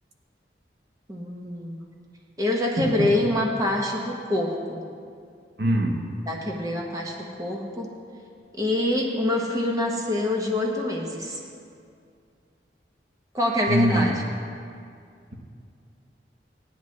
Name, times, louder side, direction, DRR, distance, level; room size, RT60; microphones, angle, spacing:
voice 1, 1.1-1.8 2.4-4.8 6.3-7.9 8.5-11.4 13.3-14.2, left 1 dB, 20° right, -1 dB, 1.0 m, -26 dB
voice 2, 2.8-3.2 5.6-6.0 13.7-14.1, equal, 70° right, 1 dB, 1.2 m, -23 dB
17.5 x 10.0 x 3.2 m, 2.4 s
head